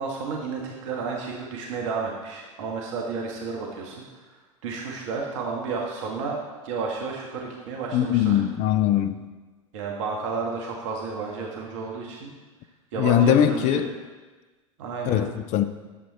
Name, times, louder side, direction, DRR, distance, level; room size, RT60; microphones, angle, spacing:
voice 1, 0.0-6.4 6.6-8.4 9.7-12.3 12.9-13.8 14.8-15.3, right 4 dB, 60° right, 1.6 m, -32 dB
voice 2, 7.9-9.2 13.0-13.9 15.0-15.6, left 10 dB, 40° left, 0.6 m, -21 dB
11.0 x 7.7 x 4.2 m
figure-of-eight pair, 85°, 18 cm